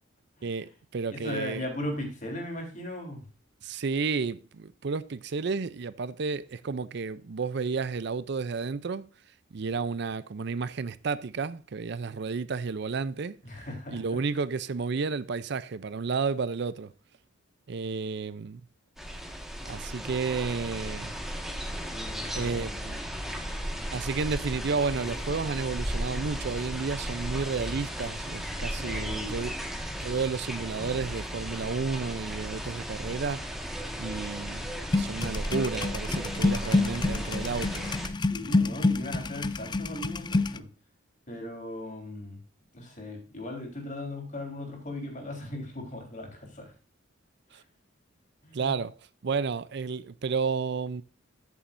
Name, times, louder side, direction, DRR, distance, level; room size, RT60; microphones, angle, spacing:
voice 1, 0.4-1.7 3.6-9.1 9.5-13.4 13.9-16.9 17.7-18.6 19.6-21.1 22.4-23.0 23.9-29.5 30.0-33.5 34.0-37.9 47.5-47.6 48.5-48.9 49.2-51.0, right 4 dB, 55° right, 0.5 m, -31 dB
voice 2, 1.1-3.3 13.4-14.0 21.9-22.8 28.7-29.4 38.2-40.7 41.3-42.4 42.7-46.7 47.5-47.6 48.4-48.7, left 1 dB, 40° left, 3.7 m, -38 dB
sound 1, 19.0-38.1, equal, ahead, 1.5 m, -35 dB
sound 2, 34.9-40.6, left 2 dB, 20° left, 0.4 m, -27 dB
14.0 x 7.2 x 2.6 m
head